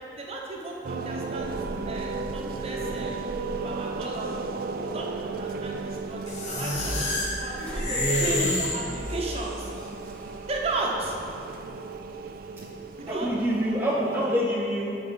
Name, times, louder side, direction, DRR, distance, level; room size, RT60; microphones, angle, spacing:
voice 1, 0.1-1.6 1.9-3.2 3.6-7.1 7.4-9.7 10.5-11.2 13.0-13.3, right 2 dB, 35° right, -2 dB, 1.1 m, -34 dB
sound 1, 0.8-14.3, right 4 dB, 55° right, 0.4 m, -35 dB
sound 2, 1.3-13.8, equal, 5° left, 1.1 m, -43 dB
sound 3, 6.3-9.5, left 2 dB, 40° left, 1.3 m, -29 dB
voice 2, 7.9-8.5 13.1-15.0, equal, 10° right, -5 dB, 0.7 m, -26 dB
8.4 x 4.5 x 5.7 m, 2.7 s
head